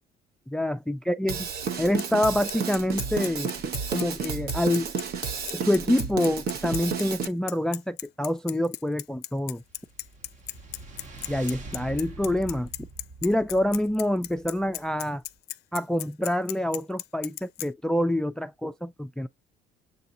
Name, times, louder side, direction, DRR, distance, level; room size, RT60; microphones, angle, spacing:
voice 1, 0.5-1.5 1.8-3.5 3.9-4.9 5.5-9.6 11.3-12.7 13.2-15.2 15.7-19.3, left 1 dB, 5° left, 0.3 m, -26 dB
Drum kit / Drum, 1.3-7.3, right 6 dB, 65° right, 0.9 m, -31 dB
Bicycle, 1.7-17.7, left 17 dB, 75° left, 0.4 m, -36 dB
sound 1, 9.6-15.1, right 2 dB, 45° right, 1.3 m, -44 dB
7.1 x 2.4 x 2.7 m
cardioid pair, 110°, 17 cm